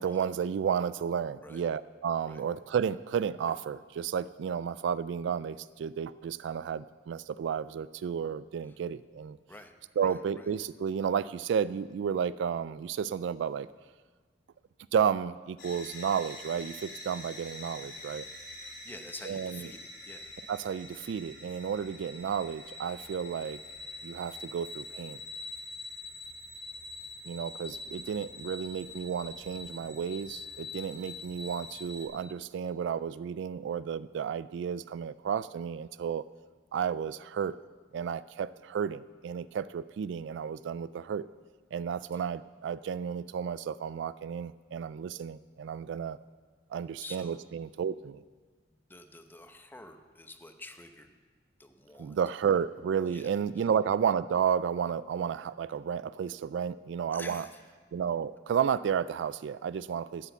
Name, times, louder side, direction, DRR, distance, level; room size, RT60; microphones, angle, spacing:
voice 1, 0.0-9.4 10.0-13.7 14.9-18.3 19.2-19.7 20.5-23.6 24.0-25.2 27.2-36.2 36.7-37.6 37.9-41.3 41.7-46.2 46.7-48.2 52.0-57.5 57.9-60.3, right 7 dB, 70° right, 16 dB, 0.3 m, -32 dB
voice 2, 10.0-10.5 18.6-20.3 47.0-47.4 48.9-51.1 51.6-52.2 53.1-53.3 55.7-55.8 57.1-57.6, left 2 dB, 10° left, 6 dB, 0.8 m, -48 dB
sound 1, 15.6-32.1, left 2 dB, 70° left, 3.4 m, -45 dB
12.5 x 8.3 x 6.8 m, 1.5 s
head